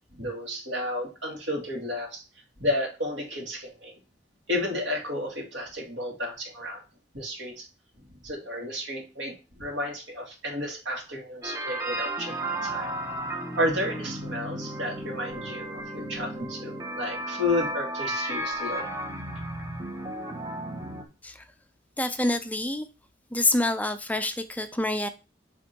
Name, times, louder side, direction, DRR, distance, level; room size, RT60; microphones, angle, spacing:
voice 1, 0.1-2.2 2.6-3.9 4.5-6.8 7.1-7.7 8.2-12.9 13.2-18.9, left 1 dB, 70° right, 2.2 m, -32 dB
sound 1, 11.4-21.0, right 1 dB, 20° right, 1.1 m, -34 dB
voice 2, 22.0-22.9 23.3-25.1, left 2 dB, 10° left, 0.4 m, -26 dB
8.0 x 3.5 x 4.4 m
head